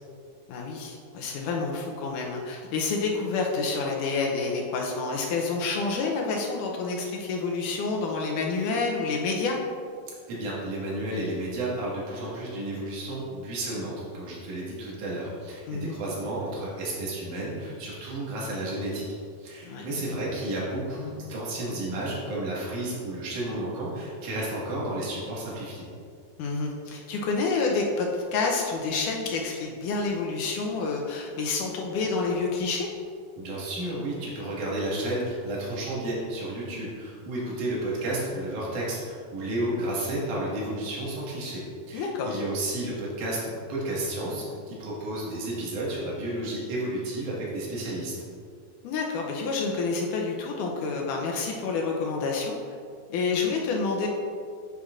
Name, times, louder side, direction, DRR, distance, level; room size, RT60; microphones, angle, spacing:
voice 1, 0.5-9.6 15.7-16.0 19.6-19.9 26.4-32.9 41.9-42.4 48.8-52.8 53.1-54.1, left 4 dB, 80° left, 0 dB, 2.0 m, -28 dB
voice 2, 10.3-19.0 19.4-25.9 33.4-41.6 41.9-48.1, right 1 dB, 60° right, -6 dB, 3.0 m, -32 dB
8.4 x 8.1 x 2.5 m, 2.2 s
omnidirectional pair, 4.1 m